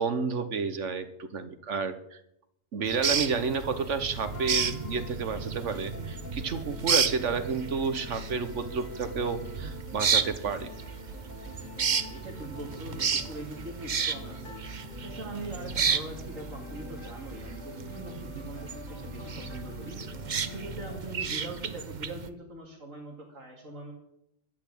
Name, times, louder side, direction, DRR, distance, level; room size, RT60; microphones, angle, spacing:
voice 1, 0.0-2.2 2.7-10.7, right 5 dB, 70° right, 11 dB, 1.4 m, -31 dB
sound 1, 2.9-22.3, right 6 dB, 40° right, 0.8 m, -33 dB
sound 2, 4.2-21.1, left 2 dB, 75° left, 2.7 m, -44 dB
voice 2, 11.9-14.5 15.0-20.0 20.5-23.9, right 2 dB, 85° right, -3 dB, 2.8 m, -42 dB
12.0 x 8.4 x 8.5 m, 0.78 s
omnidirectional pair, 1.3 m